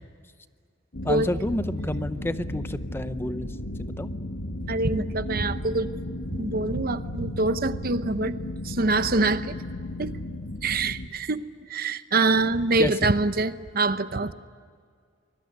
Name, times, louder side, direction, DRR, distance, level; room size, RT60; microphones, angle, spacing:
sound 1, 0.9-11.1, left 1 dB, 65° left, 1.7 m, -34 dB
voice 1, 1.0-4.1 12.8-13.1, left 1 dB, 10° left, 11 dB, 0.7 m, -30 dB
voice 2, 4.7-5.9 6.3-8.4 8.6-9.6 10.0-10.1 10.6-14.3, right 3 dB, 50° right, 12 dB, 0.9 m, -25 dB
25.0 x 21.5 x 9.4 m, 2.1 s
head